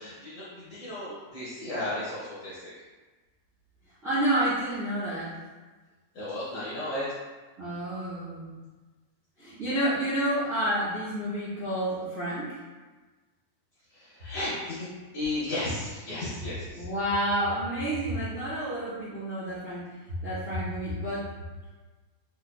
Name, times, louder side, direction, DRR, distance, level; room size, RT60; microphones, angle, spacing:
voice 1, 0.0-2.7 6.1-7.1 13.9-14.9 15.1-16.8, left 1 dB, 75° left, -10 dB, 1.4 m, -34 dB
voice 2, 4.0-5.4 7.6-8.6 9.4-12.6 16.7-21.3, right 1 dB, 60° right, -13 dB, 0.8 m, -29 dB
5.9 x 2.2 x 2.2 m, 1.3 s
omnidirectional pair, 3.7 m